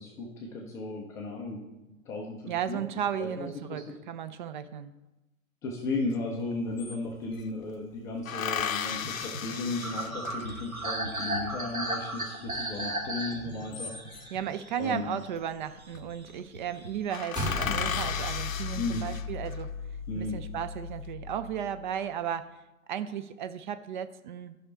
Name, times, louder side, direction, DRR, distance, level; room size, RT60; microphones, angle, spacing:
voice 1, 0.0-1.6 1.9-2.8 3.2-3.8 5.6-14.3 14.8-15.1 17.6-17.8 18.7-19.0 20.1-20.4, left 3 dB, 10° left, -2 dB, 0.4 m, -35 dB
voice 2, 2.5-3.8 4.1-4.9 14.3-19.7 20.1-22.6 22.9-24.6, right 9 dB, 35° right, 11 dB, 0.6 m, -34 dB
sound 1, 6.1-6.2 6.4-7.5 8.3-10.8 13.4-14.4 15.6-16.0 16.3-16.4 16.7-16.8 17.1-19.7 20.2-20.9, left 8 dB, 70° left, 0.6 m, -35 dB
sound 2, 8.9-15.4 15.8-17.2 17.4-18.1, right 1 dB, 85° right, 1.5 m, -36 dB
sound 3, 17.3-21.9, left 3 dB, 10° right, 1.8 m, -36 dB
13.0 x 5.6 x 4.2 m, 1.0 s
figure-of-eight pair, 110°, 41 cm